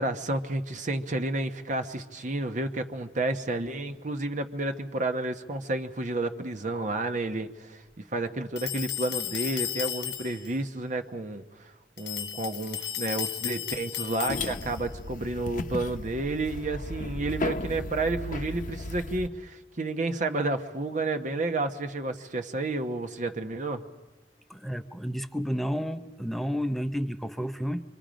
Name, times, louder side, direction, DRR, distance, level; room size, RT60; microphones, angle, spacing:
voice 1, 0.0-11.7 12.0-23.8, right 2 dB, 45° right, 8 dB, 1.0 m, -31 dB
sound 1, 8.6-10.5 12.0-14.9, left 11 dB, 75° left, 1.0 m, -34 dB
sound 2, 14.3-19.3, left 2 dB, 50° left, 0.8 m, -35 dB
voice 2, 24.5-27.8, equal, ahead, 10 dB, 0.7 m, -31 dB
25.5 x 25.0 x 5.1 m, 1.2 s
head